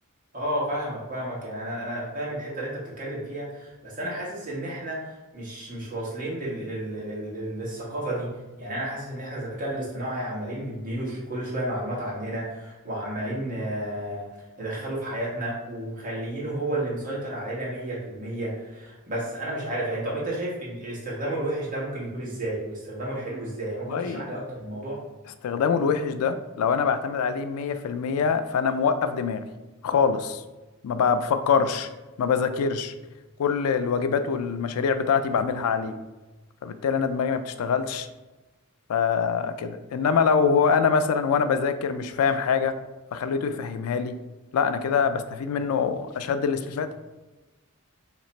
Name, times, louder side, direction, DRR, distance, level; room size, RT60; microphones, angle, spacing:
voice 1, 0.3-8.3 8.6-14.3 14.6-25.0, right 1 dB, 40° right, -6 dB, 1.4 m, -32 dB
voice 2, 23.9-24.2 25.4-29.4 29.8-30.4 30.8-31.9 32.2-32.9 33.4-36.0 36.6-38.1 38.9-42.7 43.1-44.2 44.5-46.9, left 6 dB, 90° left, 10 dB, 0.3 m, -24 dB
3.2 x 2.9 x 4.1 m, 1.1 s
head